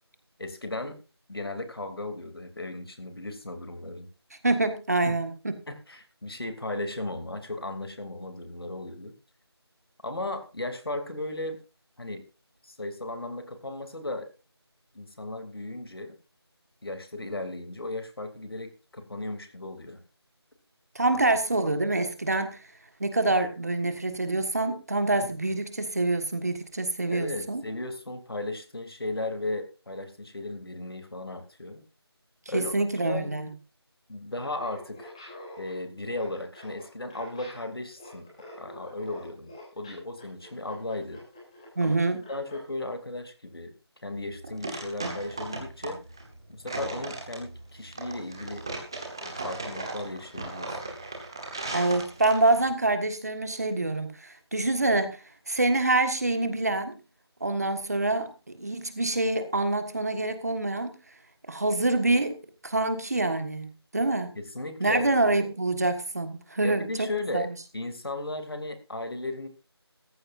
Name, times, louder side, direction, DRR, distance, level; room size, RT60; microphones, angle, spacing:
voice 1, 0.4-1.0 1.3-4.1 5.0-5.2 5.7-9.1 10.0-11.6 12.0-12.2 12.6-14.3 14.9-16.1 16.8-20.0 21.1-21.2 25.2-25.3 27.1-31.8 32.5-33.4 34.1-35.1 35.6-38.3 38.6-41.2 41.8-42.0 42.3-43.7 44.0-46.0 46.5-48.7 49.2-50.8 64.3-65.1 66.6-67.5 67.7-69.5, left 2 dB, 60° left, 7 dB, 2.8 m, -36 dB
voice 2, 4.4-5.5 20.9-22.6 23.0-27.6 32.5-33.5 41.8-42.2 51.7-57.0 57.4-58.3 58.6-60.9 61.5-62.3 62.6-64.3 64.8-67.1 67.3-67.5, right 2 dB, 35° right, 9 dB, 1.6 m, -26 dB
Laughter, 34.3-42.7, left 1 dB, 10° left, 3.1 m, -47 dB
sound 1, 44.1-52.7, right 2 dB, 10° right, 1.1 m, -37 dB
16.5 x 14.5 x 2.6 m, 0.30 s
figure-of-eight pair, 175°, 14 cm